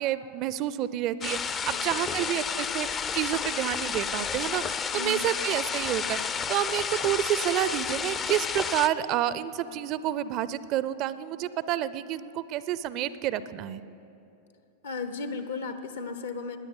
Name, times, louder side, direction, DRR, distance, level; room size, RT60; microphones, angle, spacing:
voice 1, 0.0-6.2 6.5-13.8, right 12 dB, 40° right, 16 dB, 0.5 m, -29 dB
sound 1, 1.2-8.9, left 6 dB, 25° left, 0.5 m, -31 dB
voice 2, 1.6-2.1 4.9-5.3 14.8-16.6, left 4 dB, 65° left, 9 dB, 1.1 m, -35 dB
18.0 x 10.0 x 7.2 m, 2.8 s
figure-of-eight pair, 90°, 0 cm